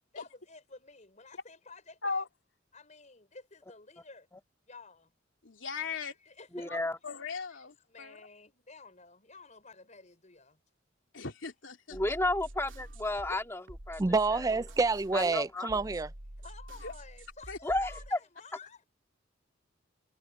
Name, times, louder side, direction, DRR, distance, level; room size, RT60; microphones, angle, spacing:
voice 1, 0.1-2.2 2.7-4.3 4.7-5.1 5.9-6.7 7.9-10.6 16.4-18.8, left 4 dB, 40° left, 5.4 m, -52 dB
voice 2, 5.4-6.1 6.7-8.2 11.1-12.0 16.8-16.9 17.5-17.6, left 4 dB, 90° left, 2.8 m, -38 dB
voice 3, 6.5-7.0 11.9-14.0 14.3-14.5 15.1-15.8 17.6-18.2, left 1 dB, 15° left, 2.3 m, -32 dB
sound 1, 11.9-18.1, right 1 dB, 80° right, 2.8 m, -47 dB
voice 4, 14.0-16.1, right 3 dB, 20° right, 0.4 m, -28 dB
head